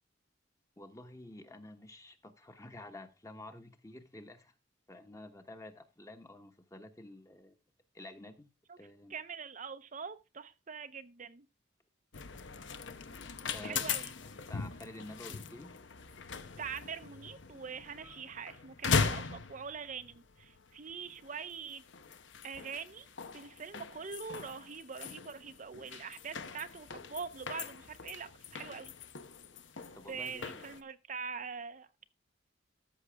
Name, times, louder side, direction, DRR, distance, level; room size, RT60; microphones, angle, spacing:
voice 1, 0.8-4.5 4.9-7.5 7.9-8.5 8.8-9.2 13.5-13.9 14.5-15.7 29.9-30.6, left 1 dB, 15° left, 1.1 m, -50 dB
voice 2, 9.1-11.4 13.6-14.1 16.6-21.8 22.4-23.1 23.3-28.9 30.1-32.0, right 6 dB, 40° right, 0.6 m, -43 dB
sound 1, 12.1-30.8, left 5 dB, 70° left, 0.9 m, -40 dB
13.5 x 6.3 x 3.4 m
head